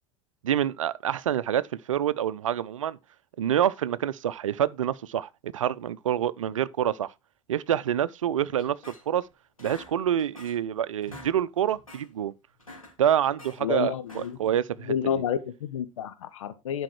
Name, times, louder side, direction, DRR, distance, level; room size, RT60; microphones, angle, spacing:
voice 1, 0.4-1.6 1.9-3.0 3.4-7.1 7.5-8.8 9.1-9.2 9.6-12.3 13.0-14.9, right 10 dB, 70° right, 0.6 m, -27 dB
sound 1, 8.6-9.3 9.6-10.7 11.0-11.3 11.7-12.1 12.5-13.6 14.0-14.5, left 1 dB, 90° left, 3.1 m, -47 dB
voice 2, 13.6-14.4 14.9-16.8, left 9 dB, 65° left, 0.9 m, -30 dB
11.5 x 5.4 x 4.4 m
figure-of-eight pair, 80°, 17 cm